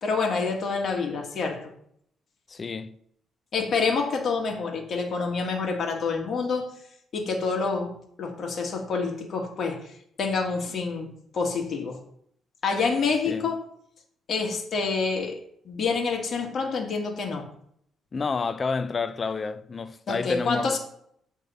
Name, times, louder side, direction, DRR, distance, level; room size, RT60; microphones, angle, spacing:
voice 1, 0.0-1.7 3.5-6.7 7.1-12.0 12.6-13.6 14.3-15.4 15.7-17.5 20.1-20.8, left 4 dB, 55° left, 1.8 m, -27 dB
voice 2, 2.5-3.0 13.3-13.5 18.1-20.8, left 4 dB, 35° left, 0.5 m, -29 dB
7.5 x 3.6 x 5.4 m
cardioid pair, 90°, 0 cm